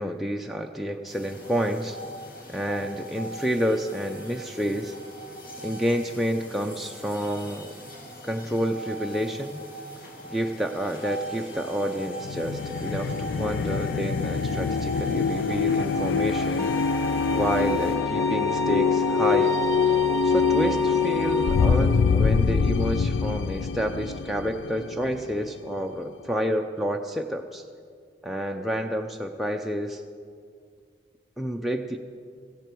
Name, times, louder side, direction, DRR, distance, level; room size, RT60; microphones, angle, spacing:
voice 1, 0.0-2.0 2.5-4.9 5.6-7.7 8.2-9.6 10.3-16.7 17.3-19.5 19.9-27.7 28.2-30.0 31.4-32.0, equal, ahead, 1 dB, 0.5 m, -29 dB
sound 1, 1.1-18.0, right 1 dB, 50° left, 2.3 m, -38 dB
Slow-Motion Music, 12.2-25.7, left 5 dB, 75° left, 0.4 m, -25 dB
Bowed string instrument, 16.6-21.6, right 1 dB, 15° left, 0.9 m, -31 dB
16.0 x 15.0 x 4.6 m, 2.2 s
head